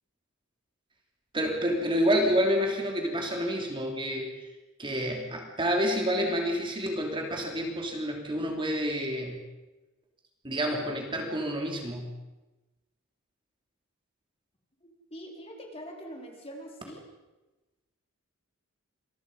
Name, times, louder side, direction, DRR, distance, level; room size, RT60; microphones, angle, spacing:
voice 1, 1.3-4.3 4.8-9.4 10.4-12.1, equal, 25° right, 1 dB, 3.2 m, -28 dB
voice 2, 14.8-17.0, equal, 30° left, 1 dB, 4.3 m, -44 dB
27.0 x 22.0 x 5.5 m, 1.1 s
head